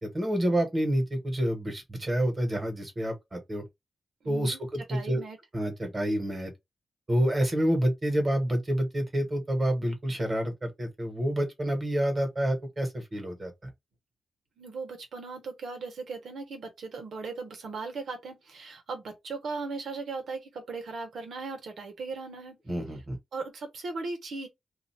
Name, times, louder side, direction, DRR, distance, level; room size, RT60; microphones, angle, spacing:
voice 1, 0.0-3.6 4.2-5.2 5.5-6.5 7.1-13.5 22.7-23.2, right 1 dB, 25° right, 1.5 m, -28 dB
voice 2, 4.2-4.6 4.9-5.4 14.6-22.6 23.3-24.5, right 4 dB, 80° right, 1.3 m, -38 dB
2.7 x 2.6 x 4.2 m
wide cardioid pair, 115°, 0 cm